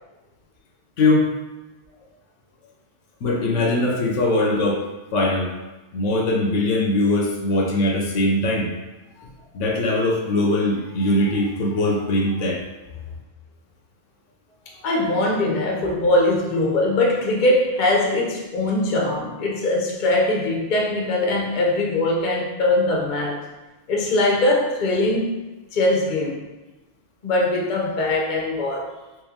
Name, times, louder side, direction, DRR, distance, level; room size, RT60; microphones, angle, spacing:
voice 1, 1.0-1.3 3.2-4.8 5.1-5.5 5.9-8.7 9.5-12.6, left 1 dB, 80° left, 0 dB, 1.0 m, -21 dB
voice 2, 14.8-23.4 23.9-25.3 25.7-26.4 27.2-28.9, left 2 dB, 45° left, -1 dB, 0.7 m, -21 dB
3.1 x 3.0 x 3.5 m, 1.1 s
omnidirectional pair, 1.3 m